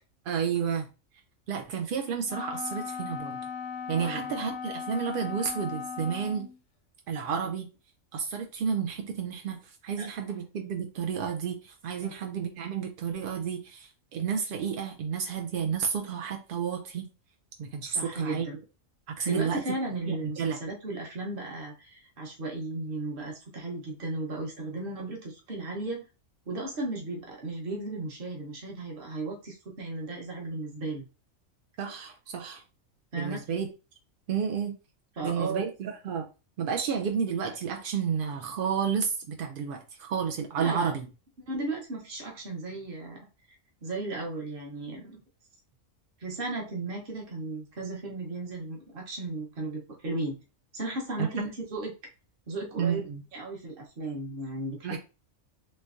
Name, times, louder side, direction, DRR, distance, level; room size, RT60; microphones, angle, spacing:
voice 1, 0.3-0.9 1.5-3.4 3.9-6.5 7.1-7.7 8.1-17.1 17.6-18.5 19.1-19.6 20.0-20.6 31.8-32.6 33.2-33.7 34.3-34.8 35.2-36.3 36.6-41.1 51.2-51.4 52.8-53.2 54.8-55.0, right 7 dB, 75° right, 0.4 m, -31 dB
Wind instrument woodwind instrument, 2.3-6.6, left 6 dB, 60° left, 0.7 m, -37 dB
voice 2, 4.0-4.3 10.0-10.1 12.0-12.1 17.9-18.6 19.2-26.0 26.5-31.0 33.1-33.4 35.2-35.6 40.6-41.0 41.5-43.2 43.5-43.6 43.8-45.2 46.2-50.4 50.7-51.9 52.5-55.0, right 2 dB, 45° right, 1.1 m, -35 dB
3.2 x 3.1 x 2.5 m
omnidirectional pair, 1.4 m